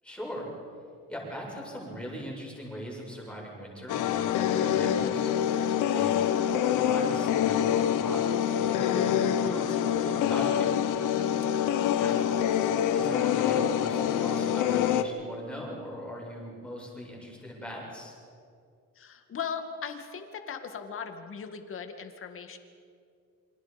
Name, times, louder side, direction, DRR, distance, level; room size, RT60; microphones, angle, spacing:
voice 1, 0.0-0.5 1.1-5.3 5.9-6.2 6.7-10.7 12.0-12.3 12.9-18.1, equal, 5° left, -3 dB, 7.6 m, -40 dB
sound 1, 3.9-15.0, left 9 dB, 80° left, 1.4 m, -26 dB
voice 2, 11.5-12.3 19.0-22.6, left 6 dB, 45° left, 6 dB, 2.3 m, -39 dB
28.5 x 25.5 x 5.3 m, 2.3 s
cardioid pair, 140°, 31 cm